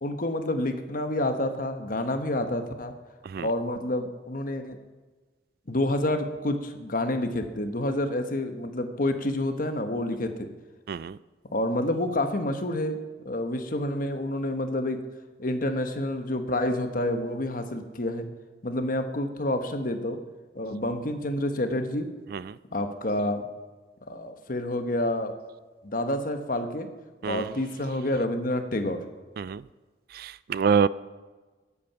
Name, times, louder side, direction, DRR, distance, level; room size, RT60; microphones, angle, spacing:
voice 1, 0.0-2.9 3.4-4.8 5.7-10.5 11.5-13.0 13.2-15.0 15.4-18.3 18.6-20.2 20.5-22.1 22.7-23.5 24.1-25.3 25.8-26.9 27.2-29.0, left 1 dB, 50° left, 7 dB, 1.2 m, -28 dB
voice 2, 30.1-30.9, right 6 dB, 55° right, 18 dB, 0.3 m, -26 dB
21.0 x 8.5 x 5.8 m, 1.3 s
head